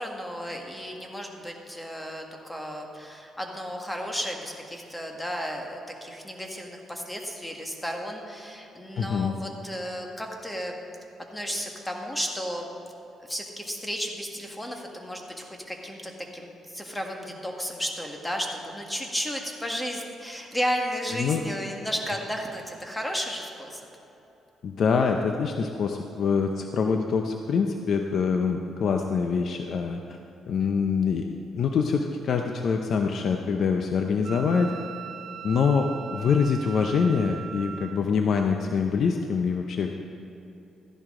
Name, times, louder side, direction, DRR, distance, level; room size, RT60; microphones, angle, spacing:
voice 1, 0.0-10.8 11.3-12.7 13.3-23.8 30.6-30.8, equal, 10° left, 1 dB, 1.7 m, -33 dB
voice 2, 9.0-9.3 21.1-21.4 24.6-30.2 30.5-31.3 31.5-34.7 35.4-39.9, left 5 dB, 60° left, 4 dB, 0.6 m, -25 dB
Wind instrument woodwind instrument, 34.2-38.0, right 8 dB, 60° right, 0.4 m, -39 dB
14.5 x 10.5 x 3.8 m, 3.0 s
cardioid pair, 90°, 0 cm